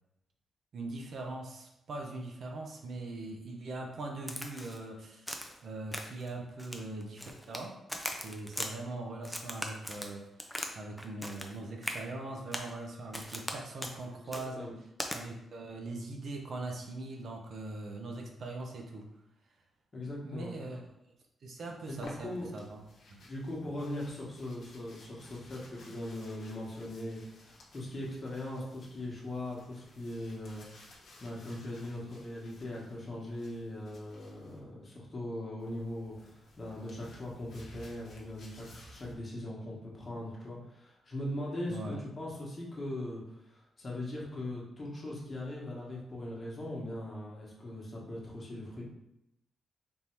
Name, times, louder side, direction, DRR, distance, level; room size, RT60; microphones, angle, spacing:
voice 1, 0.7-5.3 5.6-7.8 8.1-14.6 15.1-19.1 20.2-20.8 21.4-22.8 23.1-23.2 41.7-42.0, right 2 dB, 55° right, 1 dB, 0.6 m, -41 dB
Crack, 4.3-4.8 5.3-5.6 5.9-6.3 6.6-7.6 7.9-8.7 9.2-10.7 11.0-11.5 11.8-12.0 12.5-12.7 13.1-13.5 13.8-14.0 14.3-14.5 15.0-15.2, equal, ahead, 0.4 m, -39 dB
voice 2, 14.2-14.8 19.9-20.5 21.9-22.7 23.3-30.6 31.2-48.9, left 1 dB, 30° left, -4 dB, 1.2 m, -40 dB
sound 1, 21.8-34.6 35.6-39.2, left 1 dB, 70° left, 1.0 m, -56 dB
3.6 x 2.7 x 4.4 m, 0.86 s
wide cardioid pair, 135°, 0 cm